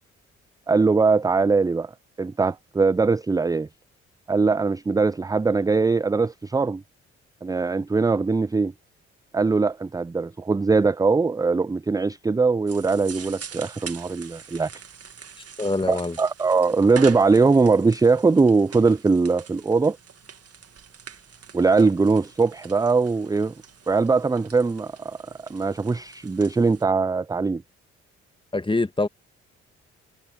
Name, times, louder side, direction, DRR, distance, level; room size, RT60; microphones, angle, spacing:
voice 1, 0.7-1.9 2.2-3.7 4.3-6.8 7.4-8.7 9.3-14.7 15.9-20.0 21.5-23.5 23.9-25.2 25.5-27.6, right 4 dB, 10° right, 0.4 m, -21 dB
sound 1, 12.7-26.8, right 7 dB, 50° right, 2.0 m, -44 dB
voice 2, 15.6-16.2 28.5-29.1, left 2 dB, 15° left, 1.5 m, -24 dB
hypercardioid pair, 45°, 32 cm